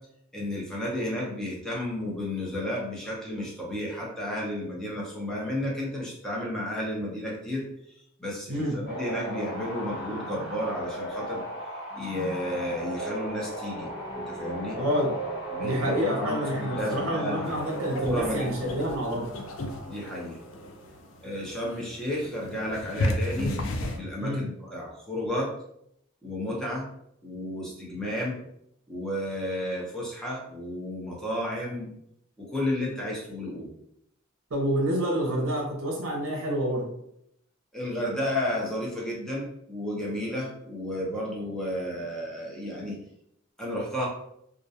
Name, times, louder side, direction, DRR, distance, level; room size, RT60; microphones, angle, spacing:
voice 1, 0.3-7.6 8.2-11.4 12.0-13.9 14.1-14.8 15.5-17.6 18.0-18.8 19.9-20.4 21.2-23.5 23.9-25.5 26.2-26.9 27.2-28.3 28.9-31.9 32.4-33.7 37.7-43.0 43.6-44.1, left 1 dB, 5° left, -4 dB, 0.6 m, -32 dB
sound 1, 8.9-21.2 25.0-25.3, right 1 dB, 55° left, 1.1 m, -36 dB
voice 2, 14.8-15.1 15.6-19.3 24.2-24.4 34.5-36.9, equal, 80° right, -1 dB, 0.6 m, -28 dB
sound 2, 17.5-24.0, left 1 dB, 80° left, 0.4 m, -33 dB
2.3 x 2.1 x 2.6 m, 0.74 s
head